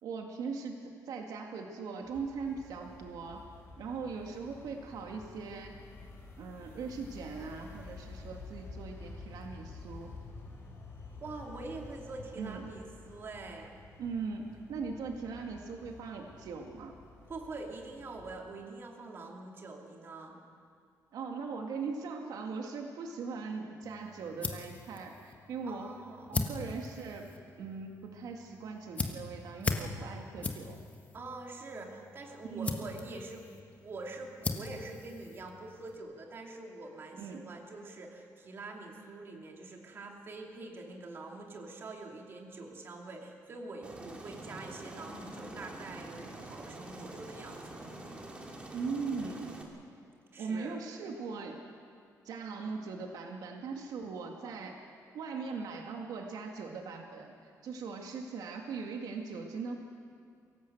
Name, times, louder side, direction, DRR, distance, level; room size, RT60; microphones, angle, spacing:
voice 1, 0.0-0.8 1.1-3.4 3.8-5.8 6.4-10.1 12.4-12.6 14.0-16.9 21.1-25.9 26.3-27.3 27.6-30.8 32.5-32.8 37.2-37.5 48.7-49.6 50.4-51.6 52.2-54.9 55.1-57.3 57.6-59.8, right 5 dB, 75° right, 2 dB, 2.2 m, -40 dB
sound 1, 2.0-18.4, left 3 dB, 40° left, 5.4 m, -50 dB
voice 2, 11.2-13.8 17.3-20.4 25.6-26.3 31.1-47.9 50.3-50.8, right 3 dB, 35° right, 1 dB, 2.6 m, -45 dB
sound 2, 23.8-35.9, left 3 dB, 20° left, 1.3 m, -40 dB
Aircraft, 43.8-49.6, right 1 dB, 15° right, 2.3 m, -46 dB
23.5 x 17.0 x 7.9 m, 2.3 s
cardioid pair, 175°, 6 cm